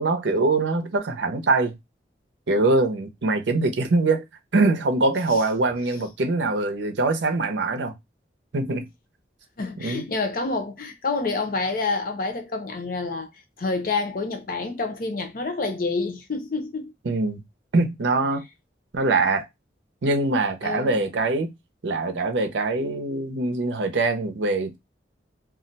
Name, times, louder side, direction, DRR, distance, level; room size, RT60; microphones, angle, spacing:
voice 1, 0.0-1.8 2.5-4.2 4.5-7.9 8.5-8.9 9.8-10.1 17.1-17.4 17.7-18.4 18.9-19.4 20.0-21.5 21.8-24.8, right 3 dB, 85° right, 0.6 m, -23 dB
voice 2, 9.6-13.3 13.6-16.9 20.6-21.0, left 3 dB, 50° left, 0.6 m, -28 dB
2.4 x 2.1 x 3.9 m
head